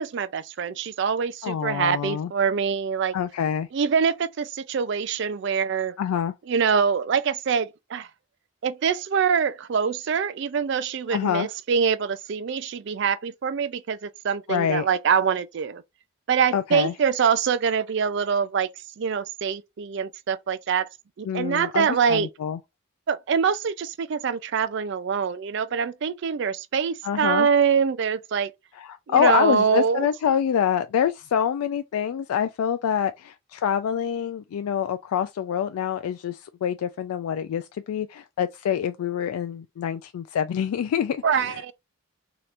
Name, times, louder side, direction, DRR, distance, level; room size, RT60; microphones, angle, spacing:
voice 1, 0.0-3.1 3.7-6.0 6.5-8.1 8.6-15.8 16.3-18.7 19.0-20.9 21.2-22.3 23.1-28.5 29.1-30.1 41.2-41.7, right 6 dB, 55° right, 0.3 m, -24 dB
voice 2, 1.4-2.3 3.1-3.7 6.0-6.3 11.1-11.5 14.5-14.9 16.5-16.9 21.2-22.6 27.0-27.5 28.7-41.7, left 8 dB, 90° left, 0.3 m, -26 dB
3.3 x 2.9 x 2.5 m
head